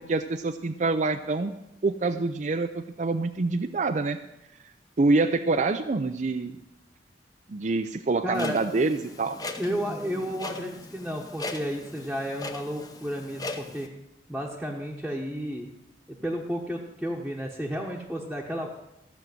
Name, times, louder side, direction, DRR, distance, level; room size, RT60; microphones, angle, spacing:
voice 1, 0.0-1.5 1.8-4.2 5.0-6.6 7.5-9.4, right 3 dB, 45° right, 9 dB, 0.5 m, -26 dB
voice 2, 8.2-8.6 9.6-13.9 14.3-15.7 16.1-18.8, equal, ahead, -4 dB, 1.2 m, -32 dB
Clock, 8.3-13.9, left 2 dB, 20° left, 0.9 m, -39 dB
15.0 x 6.4 x 7.8 m, 0.87 s
head